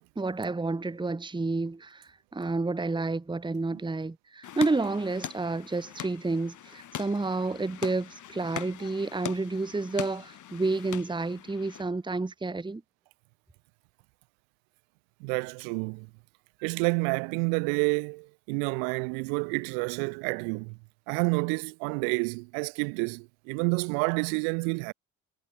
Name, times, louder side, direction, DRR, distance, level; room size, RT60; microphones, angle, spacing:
voice 1, 0.2-12.8, right 3 dB, 15° right, 1.3 m, -30 dB
sound 1, 4.4-11.8, left 11 dB, 60° left, 3.4 m, -42 dB
voice 2, 15.2-16.1 16.6-20.8 21.1-24.9, right 40 dB or more, 80° right, 1.2 m, -29 dB
hypercardioid pair, 60°, 34 cm